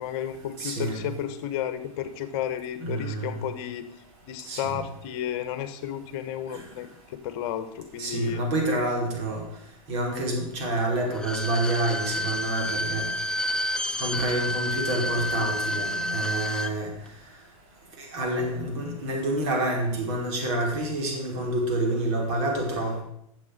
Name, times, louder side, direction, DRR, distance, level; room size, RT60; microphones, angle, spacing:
voice 1, 0.0-3.9 4.3-8.4, left 10 dB, 45° left, 11 dB, 1.3 m, -32 dB
voice 2, 0.6-1.0 2.8-3.3 4.5-4.8 8.0-9.4 9.9-13.1 14.0-16.9 18.0-23.0, right 1 dB, 50° right, 0 dB, 5.4 m, -28 dB
Bowed string instrument, 11.1-16.7 17.1-17.2, left 1 dB, 5° left, 0.7 m, -29 dB
12.0 x 7.4 x 6.8 m, 0.74 s
hypercardioid pair, 105°, 18 cm